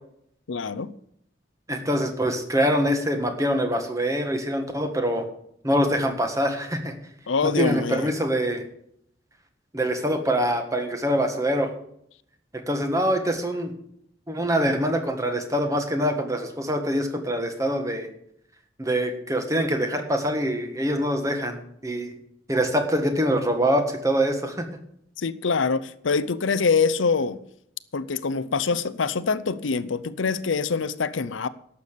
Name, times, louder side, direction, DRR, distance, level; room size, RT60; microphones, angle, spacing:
voice 1, 0.5-0.9 7.3-8.1 25.2-27.4 27.9-31.5, left 5 dB, 85° left, 0.6 m, -25 dB
voice 2, 1.7-5.3 5.6-6.9 7.4-8.6 9.7-11.7 12.7-13.7 14.3-18.1 18.8-22.2 22.5-24.7, equal, 15° right, 1.5 m, -24 dB
11.5 x 6.9 x 8.3 m
head